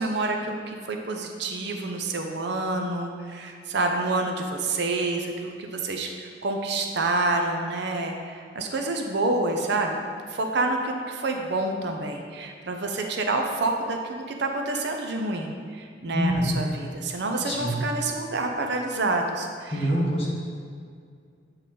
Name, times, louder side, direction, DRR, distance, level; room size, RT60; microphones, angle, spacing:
voice 1, 0.0-10.0 10.3-19.9, right 2 dB, 65° right, 3 dB, 0.6 m, -28 dB
voice 2, 16.1-16.5 17.4-17.7 19.7-20.3, equal, 35° left, -4 dB, 1.3 m, -25 dB
8.1 x 3.9 x 4.2 m, 2.2 s
head